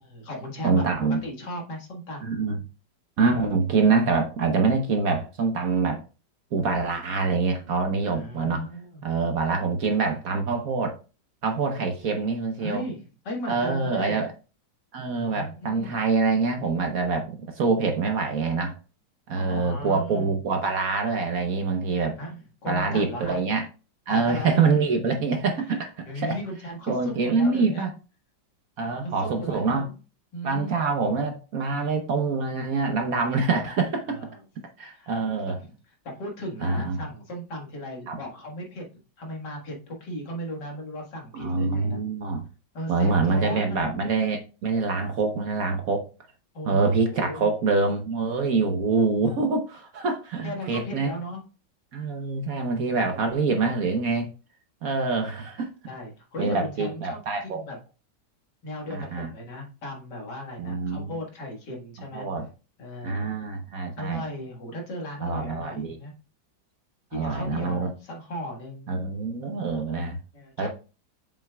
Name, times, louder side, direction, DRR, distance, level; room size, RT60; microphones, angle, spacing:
voice 1, 0.0-2.3 8.0-9.0 12.6-14.2 15.1-16.0 19.3-20.4 22.2-23.4 24.1-24.6 25.6-27.9 29.0-30.0 30.3-30.7 34.1-34.4 34.9-38.8 39.2-42.0 42.7-43.9 46.5-47.5 48.9-49.4 50.4-51.4 52.9-53.6 55.9-57.8 58.6-62.3 62.8-63.3 64.0-66.1 67.1-69.0 70.3-70.7, equal, 65° left, 2.2 m, -37 dB
voice 2, 0.6-1.2 2.2-2.6 3.2-6.0 6.5-8.6 9.0-11.0 11.4-12.8 13.5-14.3 14.9-18.8 19.3-22.2 22.7-23.7 24.1-26.4 26.9-27.9 28.8-29.9 30.4-34.2 34.8-35.6 36.6-37.0 38.1-38.2 41.3-42.4 42.9-46.0 46.7-51.2 51.9-54.3 54.8-55.7 56.4-57.6 58.9-59.3 60.6-61.2 62.1-62.4 63.0-64.2 65.2-66.0 67.1-67.9 68.9-70.2 70.6-70.7, right 4 dB, 55° right, 1.2 m, -25 dB
7.1 x 5.7 x 2.3 m
omnidirectional pair, 2.0 m